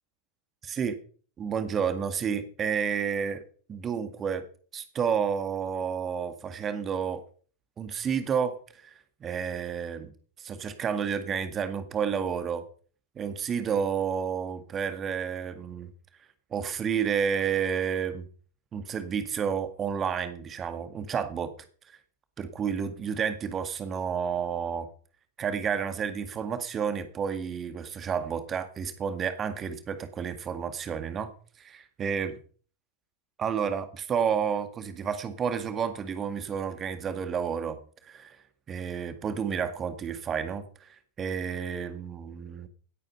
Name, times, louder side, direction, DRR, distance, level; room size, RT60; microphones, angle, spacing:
voice 1, 1.4-3.4 3.7-4.5 4.7-7.2 7.8-8.9 9.2-10.1 10.4-12.6 13.2-15.9 16.5-18.3 18.7-21.5 21.9-22.0 22.4-24.9 25.4-31.3 31.6-32.4 33.4-37.8 38.0-38.4 38.7-42.7, right 7 dB, 25° right, 10 dB, 1.9 m, -30 dB
17.5 x 8.9 x 5.5 m, 0.43 s
figure-of-eight pair, 90°, 0 cm